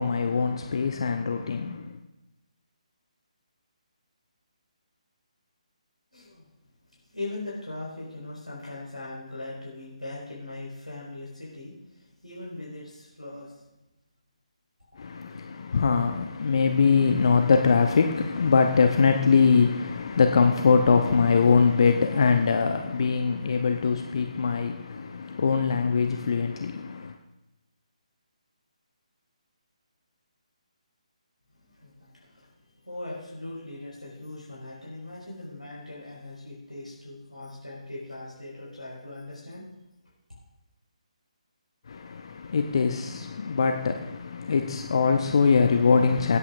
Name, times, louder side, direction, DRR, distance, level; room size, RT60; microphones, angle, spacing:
voice 1, 0.0-1.9 15.0-27.1 41.9-46.4, left 5 dB, 45° left, 5 dB, 0.7 m, -22 dB
voice 2, 6.1-6.4 7.1-13.6 31.7-32.5 32.8-39.7, left 2 dB, 85° left, -7 dB, 4.8 m, -40 dB
24.0 x 8.4 x 2.5 m, 0.97 s
figure-of-eight pair, 145°, 4 cm